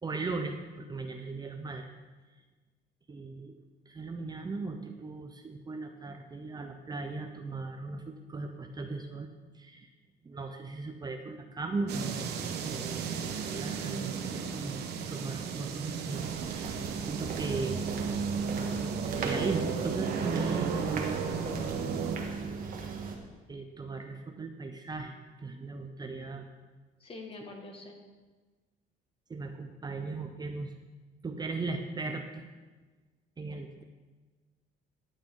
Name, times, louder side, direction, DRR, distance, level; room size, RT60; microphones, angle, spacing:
voice 1, 0.0-1.9 3.1-3.6 3.9-9.3 9.5-9.9 10.2-12.4 12.6-17.9 19.1-22.0 22.3-22.6 23.5-26.5 29.3-30.9 31.2-32.5 33.4-33.8, right 3 dB, 25° right, 5 dB, 0.8 m, -38 dB
sound 1, 11.9-22.2, right 6 dB, 75° right, 1.2 m, -35 dB
sound 2, 16.1-23.1, right 4 dB, 55° right, 1.7 m, -36 dB
voice 2, 27.0-28.0, left 2 dB, 35° left, 2 dB, 2.0 m, -45 dB
14.0 x 8.9 x 3.9 m, 1.3 s
cardioid pair, 110°, 17 cm